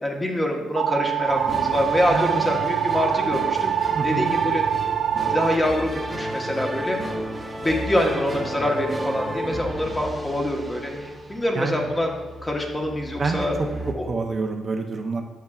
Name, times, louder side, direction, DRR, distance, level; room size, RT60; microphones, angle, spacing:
voice 1, 0.0-4.6 5.3-7.0 7.6-12.1 12.4-13.6 13.9-14.1, left 1 dB, 15° left, 1 dB, 1.2 m, -25 dB
sound 1, 0.8-5.5, right 9 dB, 75° right, 0.3 m, -24 dB
sound 2, 1.3-13.9, right 1 dB, 20° right, 1.0 m, -32 dB
voice 2, 2.1-2.4 3.9-4.3 11.5-11.9 13.2-13.5 14.1-15.2, right 4 dB, 40° right, 3 dB, 0.6 m, -27 dB
8.0 x 6.7 x 2.4 m, 1.1 s
cardioid pair, 90°, 0 cm